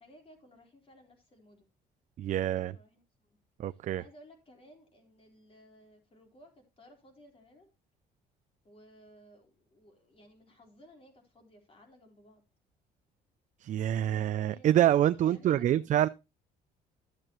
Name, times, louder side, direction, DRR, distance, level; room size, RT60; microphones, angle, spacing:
voice 1, 0.0-1.7 2.3-3.4 3.7-7.7 8.6-12.4 14.4-14.8 15.1-15.9, equal, 35° left, 3.8 m, -58 dB
voice 2, 2.2-2.8 3.6-4.0 13.6-16.1, right 12 dB, 45° right, 0.4 m, -26 dB
12.5 x 7.6 x 3.0 m
cardioid pair, 110°, 17 cm